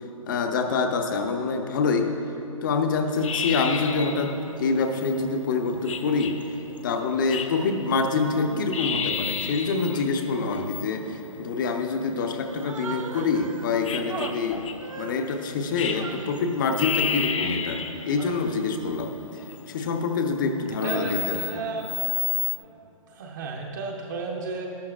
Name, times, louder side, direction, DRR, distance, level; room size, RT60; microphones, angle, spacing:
voice 1, 0.3-2.1 2.6-6.4 6.8-14.7 14.9-19.1 19.7-21.4, left 4 dB, 35° left, 5 dB, 0.8 m, -26 dB
sound 1, 3.1-22.6, left 6 dB, 60° left, 1.0 m, -33 dB
Human voice, 12.5-13.7 14.1-16.4 16.8-17.4 18.0-18.7, right 5 dB, 70° right, 0.8 m, -39 dB
voice 2, 20.8-21.9 23.1-24.7, right 3 dB, 35° right, 0 dB, 0.9 m, -33 dB
13.0 x 11.5 x 2.4 m, 2.9 s
hypercardioid pair, 160°, 18 cm